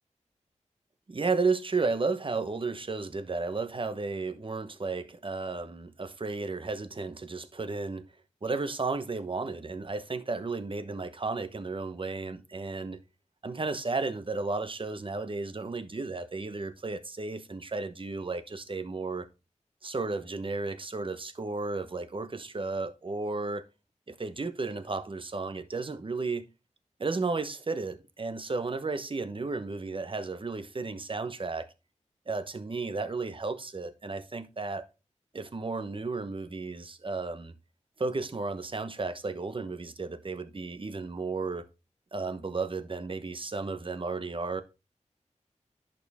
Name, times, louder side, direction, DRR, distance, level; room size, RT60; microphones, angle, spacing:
voice 1, 1.1-8.1 8.4-13.0 13.4-19.3 19.8-23.6 24.1-26.5 27.0-31.7 32.3-34.9 35.3-37.5 38.0-41.7 42.1-44.6, right 3 dB, 45° right, 1.0 m, -33 dB
11.0 x 5.4 x 3.5 m
wide cardioid pair, 75°, 13 cm